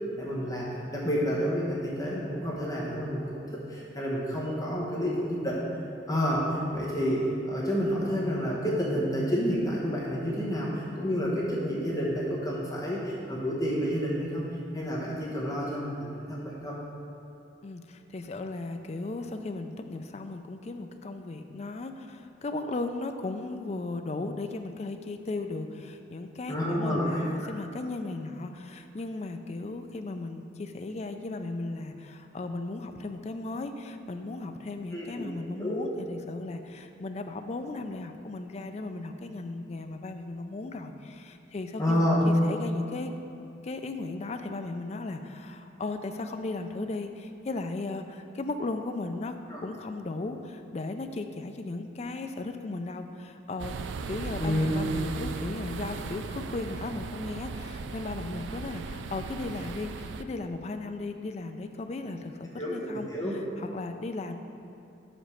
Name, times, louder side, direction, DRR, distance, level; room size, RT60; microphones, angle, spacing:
voice 1, 0.2-5.6 6.1-16.8 26.5-27.5 34.9-35.2 35.6-35.8 41.8-42.2 49.5-49.6 54.4-54.7 62.6-63.4, equal, 20° left, -5 dB, 1.0 m, -29 dB
voice 2, 17.6-43.1 43.6-49.3 49.6-53.8 54.1-64.4, left 2 dB, 35° left, 7 dB, 0.4 m, -36 dB
sound 1, 53.6-60.2, right 4 dB, 75° right, 0.3 m, -37 dB
6.1 x 5.1 x 5.6 m, 2.9 s
head